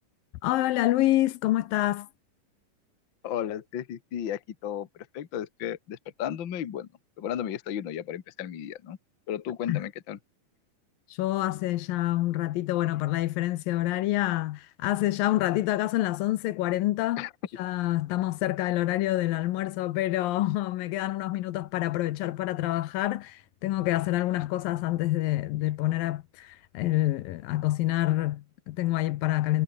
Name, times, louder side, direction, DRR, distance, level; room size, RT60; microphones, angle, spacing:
voice 1, 0.4-2.1 9.7-9.8 11.2-17.3 17.6-29.6, left 16 dB, 80° left, 2.5 m, -27 dB
voice 2, 3.2-6.9 7.2-9.0 9.3-10.2 17.2-17.3, left 10 dB, 50° left, 1.5 m, -34 dB
omnidirectional pair, 4.2 m